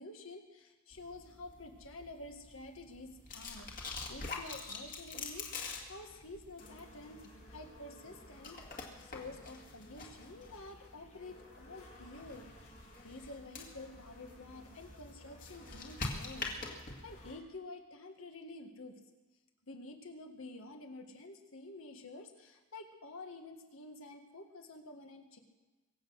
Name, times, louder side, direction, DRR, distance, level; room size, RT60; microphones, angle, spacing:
voice 1, 0.0-7.2 7.5-8.6 9.0-12.5 13.0-19.0 19.7-25.4, left 2 dB, 65° left, 4 dB, 1.9 m, -49 dB
sound 1, 0.9-17.3, left 3 dB, 40° left, 2.1 m, -46 dB
sound 2, 6.6-17.4, left 1 dB, 85° left, 6.6 m, -59 dB
23.5 x 8.1 x 6.5 m, 1.2 s
head